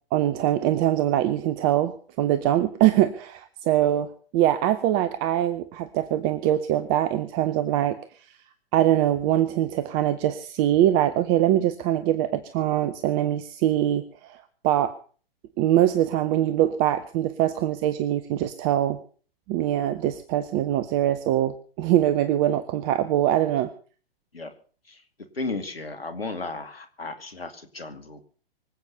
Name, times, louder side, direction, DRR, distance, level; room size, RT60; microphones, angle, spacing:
voice 1, 0.1-8.0 8.7-14.4 14.6-14.9 15.6-19.0 19.5-23.7, right 12 dB, 25° right, 13 dB, 0.7 m, -23 dB
voice 2, 25.3-28.2, left 3 dB, 75° left, 9 dB, 2.5 m, -34 dB
24.5 x 8.2 x 5.5 m, 0.42 s
figure-of-eight pair, 115°, 30 cm